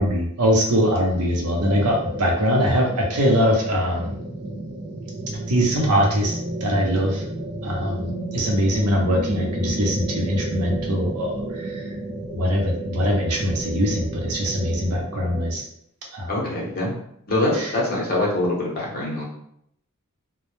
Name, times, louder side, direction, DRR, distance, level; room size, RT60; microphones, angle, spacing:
voice 1, 0.0-4.2 5.5-7.2 7.6-11.7 12.3-15.6 16.1-16.3 17.6-17.7, equal, 90° right, 0 dB, 0.6 m, -22 dB
sound 1, 1.6-15.6, right 1 dB, 35° right, 0.3 m, -31 dB
voice 2, 16.3-16.9 17.3-19.2, left 1 dB, 45° left, -4 dB, 0.7 m, -24 dB
2.1 x 2.0 x 3.0 m, 0.72 s
head